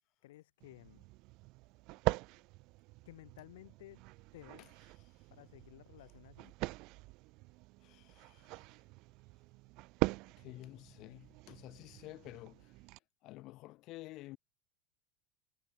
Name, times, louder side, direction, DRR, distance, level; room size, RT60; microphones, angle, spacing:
voice 1, 0.2-1.0 3.0-4.0 4.3-4.7 5.3-6.5, left 16 dB, 80° left, 5.0 m, -55 dB
sound 1, 0.6-13.0, right 23 dB, 55° right, 2.2 m, -42 dB
voice 2, 4.6-5.3 7.8-8.8 10.4-12.8 13.2-14.4, left 19 dB, 55° left, 2.3 m, -52 dB
supercardioid pair, 120°, 0 cm